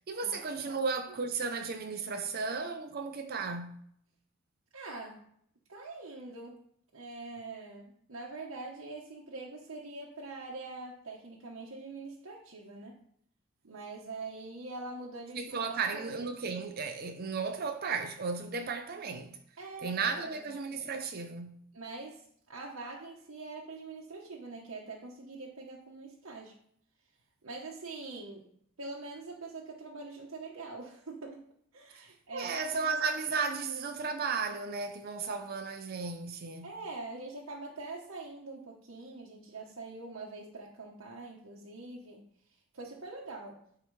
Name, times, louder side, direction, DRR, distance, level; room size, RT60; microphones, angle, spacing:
voice 1, 0.0-3.8 15.3-19.4 19.8-21.6 32.0-32.1 32.3-36.7, right 5 dB, 45° right, 0.5 m, -34 dB
voice 2, 4.7-5.2 5.7-6.6 6.9-13.0 13.6-16.0 19.6-20.5 21.7-26.6 27.4-28.5 28.8-31.5 31.7-33.0 36.6-42.3 42.7-43.6, right 3 dB, 75° right, 1.0 m, -44 dB
11.0 x 4.6 x 3.2 m
head